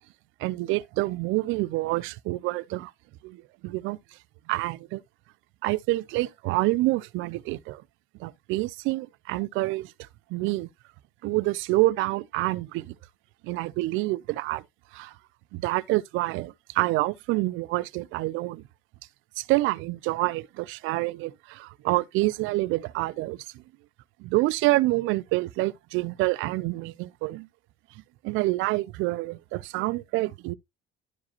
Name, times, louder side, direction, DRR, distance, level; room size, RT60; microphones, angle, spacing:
voice 1, 0.4-2.9 3.2-4.0 4.5-5.0 5.6-7.8 8.2-9.9 10.3-10.7 11.2-12.9 13.4-14.6 14.9-15.1 15.5-18.6 19.4-23.4 24.2-27.5 28.2-30.5, right 19 dB, 70° right, 0.4 m, -27 dB
11.5 x 4.9 x 2.8 m
cardioid pair, 150°, 21 cm